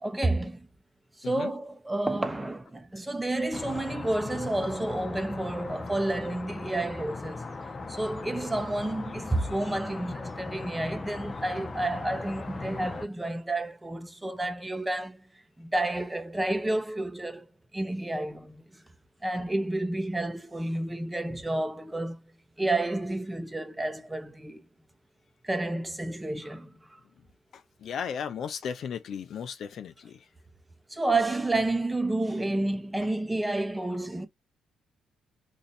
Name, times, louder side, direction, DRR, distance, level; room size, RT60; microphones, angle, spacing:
voice 1, 0.0-0.7 1.2-7.5 7.9-15.2 15.6-17.5 17.7-18.6 19.2-22.2 22.6-24.6 25.4-27.0 30.9-34.3, right 2 dB, 10° right, 0.9 m, -30 dB
sound 1, 3.5-13.1, left 3 dB, 30° left, 0.8 m, -39 dB
voice 2, 27.8-30.2, left 7 dB, 65° left, 0.7 m, -35 dB
3.1 x 2.8 x 4.0 m
cardioid pair, 90°, 0 cm